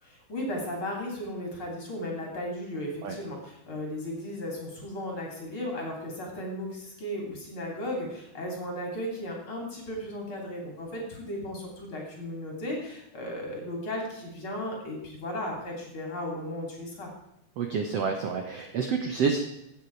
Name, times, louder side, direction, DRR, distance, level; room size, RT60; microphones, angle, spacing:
voice 1, 0.0-17.1, left 1 dB, 35° left, 0 dB, 3.7 m, -35 dB
voice 2, 17.6-19.4, right 5 dB, 75° right, 4 dB, 1.5 m, -28 dB
16.0 x 8.4 x 4.7 m, 0.85 s
omnidirectional pair, 4.5 m